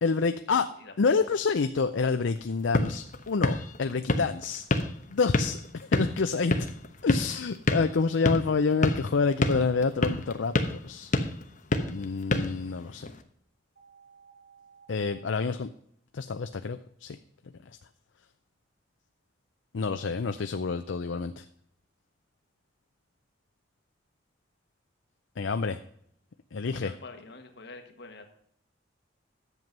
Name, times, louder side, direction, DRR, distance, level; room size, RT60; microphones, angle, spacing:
voice 1, 0.0-0.7 1.0-4.6 5.1-6.7 7.0-11.1 11.9-13.1 14.9-15.7 16.1-17.2 19.7-21.4 25.4-25.8 26.5-26.9, left 4 dB, 80° left, 9 dB, 0.5 m, -28 dB
voice 2, 0.8-1.2 26.6-28.2, left 3 dB, 65° left, 5 dB, 1.6 m, -46 dB
sound 1, 2.4-13.2, left 2 dB, 45° left, 1.0 m, -30 dB
sound 2, 13.8-15.4, right 6 dB, 70° right, 4.4 m, -56 dB
11.0 x 7.6 x 5.4 m, 0.68 s
head